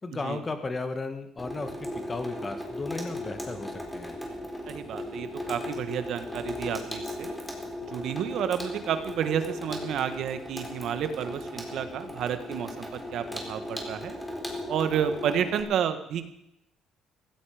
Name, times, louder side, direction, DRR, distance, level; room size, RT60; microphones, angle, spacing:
voice 1, 0.0-4.2, left 3 dB, 25° left, 8 dB, 2.0 m, -35 dB
Water tap faucet / Sink (filling or washing), 1.4-15.6, left 1 dB, 5° left, 4.1 m, -37 dB
voice 2, 4.6-7.3 7.9-14.2 14.7-16.2, right 8 dB, 65° right, 10 dB, 1.7 m, -30 dB
16.5 x 15.5 x 5.2 m, 0.81 s
cardioid pair, 105°, 0 cm